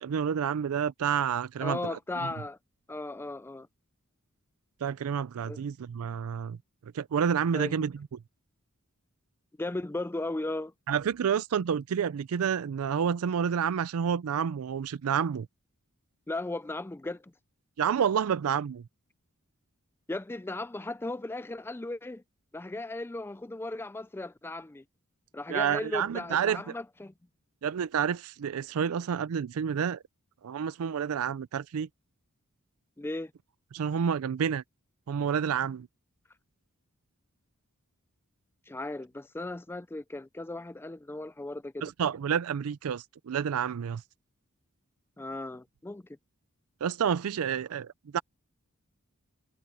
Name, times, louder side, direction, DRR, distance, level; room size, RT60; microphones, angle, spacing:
voice 1, 0.0-1.8 4.8-6.6 6.9-7.9 10.9-15.5 17.8-18.8 25.5-26.6 27.6-30.0 30.4-31.9 33.7-34.6 35.1-35.9 41.8-44.0 46.8-48.2, right 7 dB, 75° right, 0.4 m, -29 dB
voice 2, 1.6-2.6 2.9-3.7 5.5-5.6 7.5-7.9 9.6-10.7 16.3-17.3 20.1-22.2 22.5-24.8 25.3-27.1 33.0-33.3 38.7-41.8 45.2-46.0, left 2 dB, 10° left, 0.3 m, -36 dB
head